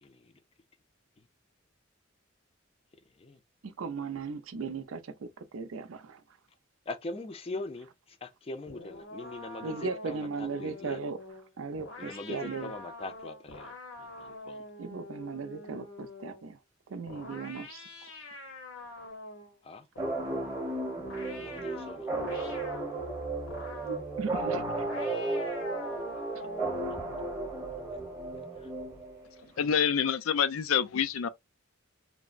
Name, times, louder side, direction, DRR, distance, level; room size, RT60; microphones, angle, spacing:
voice 1, 0.0-0.3 3.2-3.4 6.9-11.0 12.0-14.7 19.6-19.9 21.4-22.1 28.6-28.7, left 2 dB, 30° left, 0.4 m, -42 dB
voice 2, 3.6-6.2 9.6-11.2 11.6-12.7 14.8-16.6 16.9-17.8 23.8-25.1 26.3-26.4, right 4 dB, 85° right, 0.5 m, -37 dB
sound 1, 8.7-16.5 17.1-19.6 20.0-22.9 23.5-24.1 24.7-27.6, left 2 dB, 75° left, 0.9 m, -46 dB
sound 2, 20.0-29.4, right 2 dB, 15° right, 0.8 m, -34 dB
voice 3, 29.6-31.3, left 7 dB, 90° left, 0.4 m, -27 dB
3.2 x 2.0 x 2.4 m
head